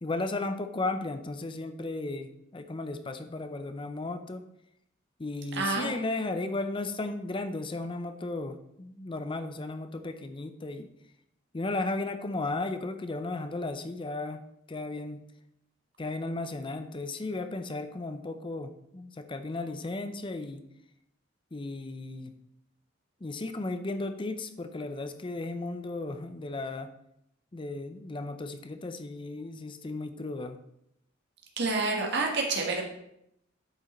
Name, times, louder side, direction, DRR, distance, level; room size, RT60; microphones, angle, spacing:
voice 1, 0.0-4.5 5.2-10.9 11.5-14.4 14.7-15.2 16.0-20.6 21.5-22.3 23.2-26.9 27.5-30.6, left 2 dB, 25° left, 9 dB, 0.5 m, -35 dB
voice 2, 5.6-5.9 31.6-32.9, right 3 dB, 60° right, 0 dB, 1.4 m, -28 dB
8.9 x 5.4 x 4.2 m, 0.77 s
head